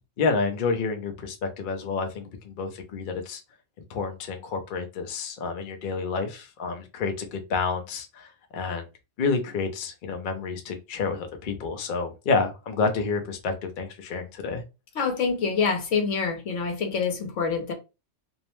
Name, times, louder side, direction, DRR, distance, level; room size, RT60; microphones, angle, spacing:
voice 1, 0.2-3.4 3.9-8.9 9.2-14.6, left 4 dB, 55° left, 0.6 m, -29 dB
voice 2, 14.9-17.7, left 5 dB, 75° left, 1.1 m, -26 dB
2.6 x 2.1 x 3.0 m
omnidirectional pair, 1.3 m